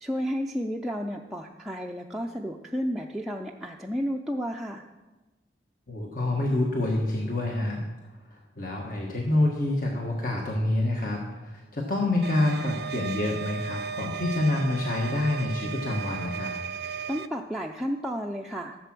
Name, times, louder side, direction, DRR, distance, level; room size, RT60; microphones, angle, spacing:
voice 1, 0.0-4.8 16.8-18.8, equal, ahead, -1 dB, 0.5 m, -32 dB
voice 2, 5.9-7.8 8.3-16.5, left 2 dB, 50° left, -1 dB, 1.4 m, -27 dB
sound 1, 12.2-17.3, right 6 dB, 60° right, 0.5 m, -35 dB
14.5 x 7.5 x 6.1 m, 1.2 s
head